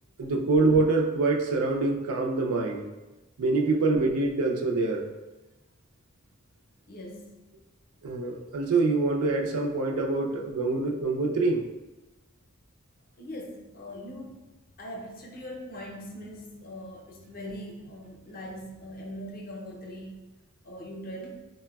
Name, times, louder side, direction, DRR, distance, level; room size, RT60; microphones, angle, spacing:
voice 1, 0.2-2.9 3.4-5.1 8.0-11.6, right 3 dB, 90° right, 1 dB, 0.4 m, -25 dB
voice 2, 6.9-7.3 13.2-14.5 14.8-20.2 20.6-21.4, equal, 40° left, -1 dB, 0.5 m, -41 dB
3.9 x 2.1 x 2.2 m, 1.1 s
head